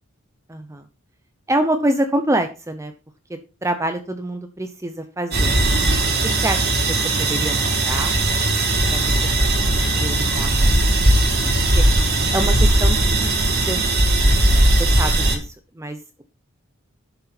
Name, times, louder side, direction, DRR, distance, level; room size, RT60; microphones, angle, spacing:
voice 1, 0.5-0.8 1.5-2.9 3.3-5.8 6.4-8.2 8.9-11.1 11.7-11.8 12.3-13.8 14.6-16.2, right 1 dB, 15° right, 7 dB, 0.8 m, -27 dB
sound 1, 5.3-15.3, right 1 dB, 50° right, 2.7 m, -18 dB
11.0 x 6.9 x 4.2 m, 0.32 s
head